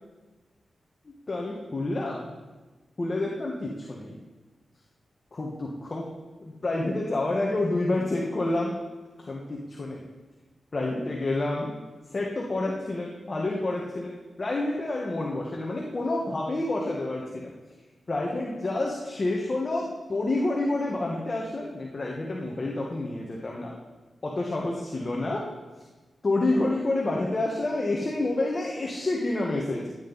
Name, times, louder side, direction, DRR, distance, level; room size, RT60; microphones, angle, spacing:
voice 1, 1.3-2.2 3.0-4.1 5.3-6.1 6.4-8.7 9.3-10.0 10.7-11.7 12.1-17.5 18.1-23.7 24.2-25.4 26.2-29.9, left 2 dB, 35° left, -2 dB, 1.5 m, -28 dB
17.5 x 9.1 x 4.1 m, 1.2 s
wide cardioid pair, 115°, 0 cm